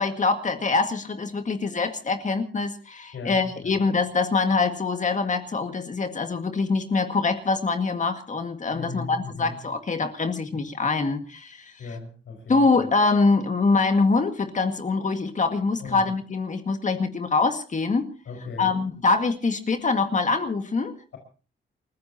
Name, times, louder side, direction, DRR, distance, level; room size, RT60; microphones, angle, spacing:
voice 1, 0.0-11.7 12.5-18.1 18.6-20.9, left 4 dB, 40° left, 7 dB, 1.9 m, -24 dB
voice 2, 3.1-3.8 8.7-9.6 11.8-12.9 15.8-16.1 18.3-18.8, left 3 dB, 85° left, 4 dB, 5.3 m, -37 dB
29.0 x 15.5 x 2.8 m, 0.36 s
wide cardioid pair, 150°, 20 cm